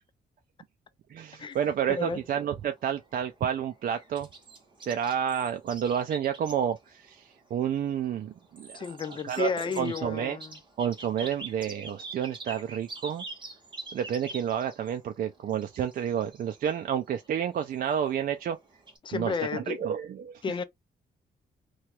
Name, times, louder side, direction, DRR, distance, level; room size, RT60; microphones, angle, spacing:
voice 1, 1.1-4.3 4.8-8.8 9.2-9.5 9.8-10.4 10.8-13.2 13.9-18.6 19.1-20.6, right 9 dB, 55° right, 0.4 m, -30 dB
sound 1, 1.5-19.0, right 3 dB, 30° right, 1.0 m, -46 dB
voice 2, 1.9-2.2 8.7-10.6 11.2-11.3 19.0-19.8 20.4-20.6, left 5 dB, 30° left, 0.4 m, -32 dB
2.9 x 2.3 x 2.8 m
wide cardioid pair, 145°, 17 cm